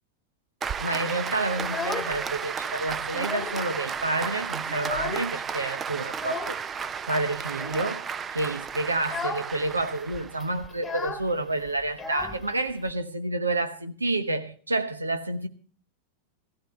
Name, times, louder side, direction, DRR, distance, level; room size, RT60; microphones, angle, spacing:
Applause, 0.6-10.7, right 6 dB, 20° right, 0.5 m, -33 dB
voice 1, 0.8-6.6 7.1-8.1 8.3-15.5, right 2 dB, 80° right, 1.1 m, -29 dB
Child speech kid speaking, 1.5-2.5 2.9-3.7 4.0-4.1 4.4-5.5 6.1-6.6 7.5-8.0 8.4-8.6 9.0-9.5 9.8-9.9 10.1-12.9, left 4 dB, 15° left, 1.3 m, -36 dB
16.5 x 15.5 x 3.2 m
figure-of-eight pair, 90°, 0 cm